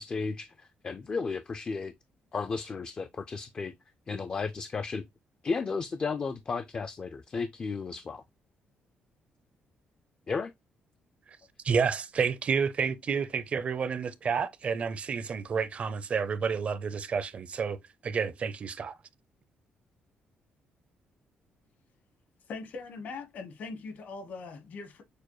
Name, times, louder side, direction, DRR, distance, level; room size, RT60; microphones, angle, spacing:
voice 1, 0.0-1.9 2.3-3.7 4.1-5.0 5.4-8.2 10.3-10.5, left 4 dB, 30° left, 0.3 m, -34 dB
voice 2, 11.6-17.8 18.0-18.9, right 6 dB, 40° right, 0.5 m, -30 dB
voice 3, 22.5-25.0, left 4 dB, 60° left, 1.2 m, -41 dB
6.5 x 2.2 x 3.0 m
cardioid pair, 130°, 3 cm